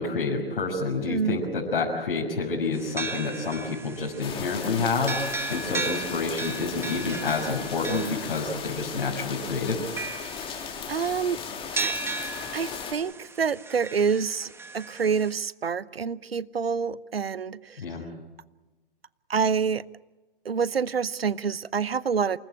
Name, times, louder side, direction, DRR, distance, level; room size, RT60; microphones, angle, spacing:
voice 1, 0.0-9.8 17.8-18.0, left 4 dB, 65° left, -2 dB, 6.1 m, -28 dB
voice 2, 1.1-1.4 10.3-11.4 11.7-11.9 12.5-17.8 19.3-19.8 20.4-22.4, right 6 dB, 90° right, 19 dB, 0.9 m, -27 dB
sound 1, 2.7-15.3, right 3 dB, 10° right, 1.7 m, -37 dB
sound 2, 4.2-12.9, left 7 dB, 20° left, 3.1 m, -37 dB
28.0 x 20.0 x 8.8 m, 1.1 s
hypercardioid pair, 130°, 29 cm